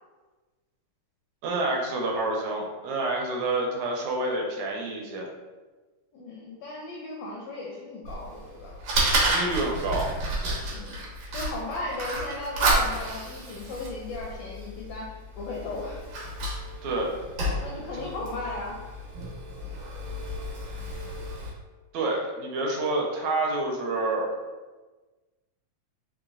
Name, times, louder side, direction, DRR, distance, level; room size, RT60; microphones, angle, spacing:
voice 1, 1.4-5.3 9.3-10.1 16.8-17.2 17.9-18.1 21.9-24.3, right 2 dB, 80° right, 0 dB, 1.9 m, -28 dB
voice 2, 6.1-8.8 10.7-11.0 11.3-15.1 15.4-16.0 17.6-18.8, left 2 dB, 80° left, -3 dB, 1.5 m, -36 dB
Fire, 8.1-21.5, right 1 dB, 65° right, 1.7 m, -31 dB
4.8 x 2.9 x 2.6 m, 1.3 s
omnidirectional pair, 3.3 m